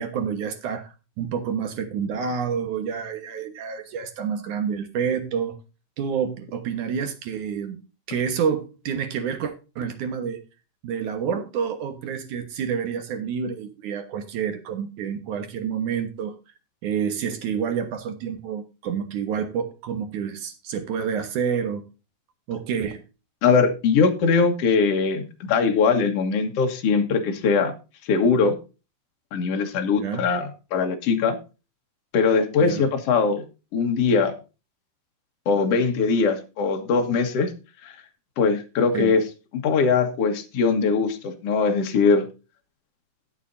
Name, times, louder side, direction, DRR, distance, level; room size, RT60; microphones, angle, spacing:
voice 1, 0.0-5.6 6.0-7.8 8.1-10.4 10.8-16.4 16.8-21.8 22.5-23.0 30.0-30.3 32.6-32.9 38.9-39.2, right 7 dB, 65° right, 7 dB, 2.5 m, -28 dB
voice 2, 23.4-27.7 28.1-28.6 29.3-31.4 32.1-33.4 33.7-34.3 35.5-37.5 37.8-37.9 38.4-39.2 39.5-42.3, left 5 dB, 55° left, 4 dB, 2.1 m, -21 dB
18.5 x 6.8 x 2.6 m, 0.31 s
omnidirectional pair, 4.2 m